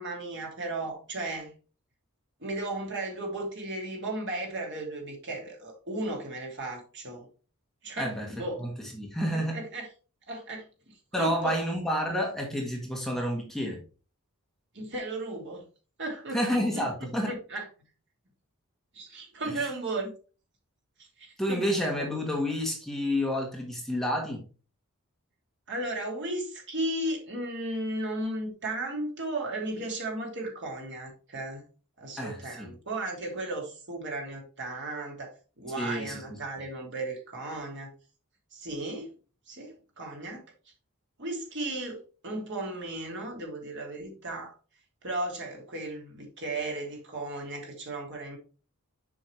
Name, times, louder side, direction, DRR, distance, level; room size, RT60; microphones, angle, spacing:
voice 1, 0.0-1.5 2.4-7.3 7.8-8.1 8.4-8.7 9.3-9.9 10.3-11.6 14.7-15.6 16.0-16.8 17.3-17.6 18.9-20.1 21.0-22.1 25.7-31.6 32.0-37.9 38.5-39.1 39.5-40.4 41.2-44.5 45.0-48.4, right 2 dB, 55° right, 2.6 m, -35 dB
voice 2, 8.0-9.6 11.1-13.8 16.3-17.3 19.4-19.7 21.4-24.4 32.2-32.7 35.8-36.2, equal, ahead, 1.4 m, -30 dB
7.3 x 5.5 x 3.2 m
head